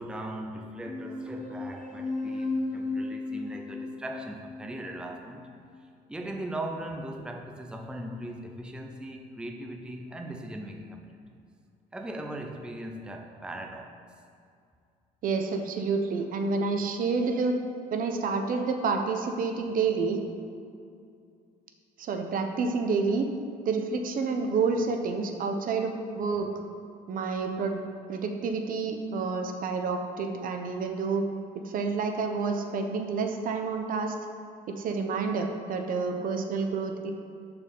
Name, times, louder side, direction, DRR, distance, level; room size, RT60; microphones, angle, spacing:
voice 1, 0.0-5.5 6.1-11.1 11.9-13.9, right 1 dB, 5° right, 2 dB, 0.6 m, -39 dB
sound 1, 0.8-5.8, left 3 dB, 50° left, 1.2 m, -35 dB
voice 2, 15.2-17.6 17.9-20.2 22.0-23.3 23.6-26.5 27.1-27.8 28.1-31.2 31.5-34.2 34.7-37.1, right 4 dB, 55° right, 5 dB, 0.8 m, -29 dB
6.9 x 4.3 x 6.7 m, 2.4 s
cardioid pair, 110°, 17 cm